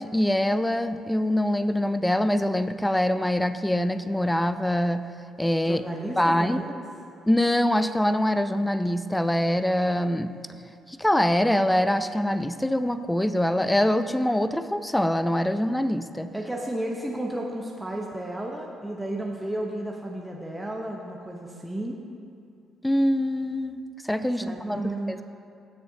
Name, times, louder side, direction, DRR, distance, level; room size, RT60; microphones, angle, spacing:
voice 1, 0.0-5.0 5.4-5.8 6.2-6.6 7.3-10.3 10.9-16.3 22.8-24.8 25.1-25.2, left 1 dB, 10° left, 11 dB, 0.5 m, -24 dB
voice 2, 5.6-6.8 16.3-22.0 24.4-25.2, right 1 dB, 10° right, -1 dB, 1.0 m, -33 dB
16.0 x 7.0 x 2.8 m, 2.5 s
figure-of-eight pair, 45°, 0 cm